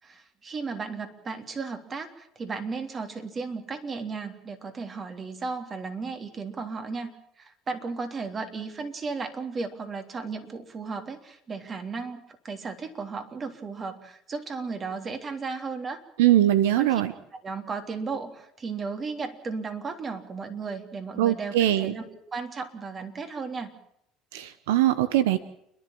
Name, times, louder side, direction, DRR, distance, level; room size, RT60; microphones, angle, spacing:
voice 1, 0.0-7.1 7.4-16.0 16.8-17.0 17.3-23.7, right 4 dB, 35° right, 6 dB, 3.4 m, -35 dB
voice 2, 16.2-17.1 21.2-21.9 24.3-25.4, right 13 dB, 90° right, 14 dB, 0.9 m, -21 dB
29.5 x 11.5 x 8.8 m, 0.74 s
supercardioid pair, 85°, 0 cm